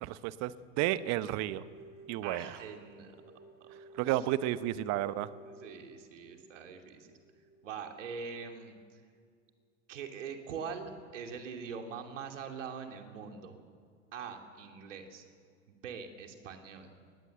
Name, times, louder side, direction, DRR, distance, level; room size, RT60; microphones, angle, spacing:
voice 1, 0.0-1.6 2.1-2.5 4.0-5.3, right 14 dB, 45° right, 15 dB, 1.1 m, -32 dB
sound 1, 1.6-8.6, right 1 dB, 25° right, 4.3 m, -54 dB
voice 2, 2.2-3.2 3.6-3.7 4.0-4.3 5.4-7.1 7.6-8.7 9.9-13.6 14.1-15.2 15.7-16.9, right 6 dB, 70° right, 4 dB, 2.9 m, -43 dB
22.0 x 19.5 x 7.8 m, 2.1 s
figure-of-eight pair, 85°, 38 cm